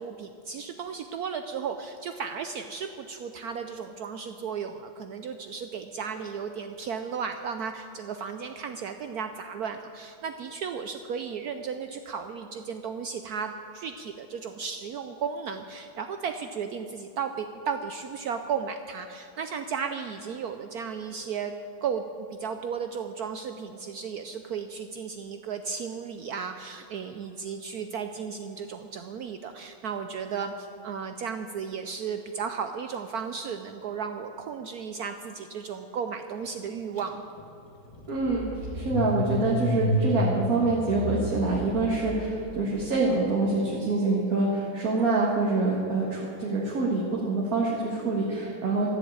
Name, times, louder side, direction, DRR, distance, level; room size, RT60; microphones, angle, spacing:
voice 1, 0.0-21.5 21.8-37.2, right 6 dB, 75° right, 7 dB, 0.8 m, -34 dB
Car / Engine starting, 37.0-37.1 37.4-42.6, left 1 dB, 15° left, 1.7 m, -31 dB
voice 2, 38.1-38.5 38.7-48.9, right 3 dB, 45° right, -4 dB, 2.0 m, -26 dB
14.0 x 7.6 x 8.6 m, 2.9 s
omnidirectional pair, 2.2 m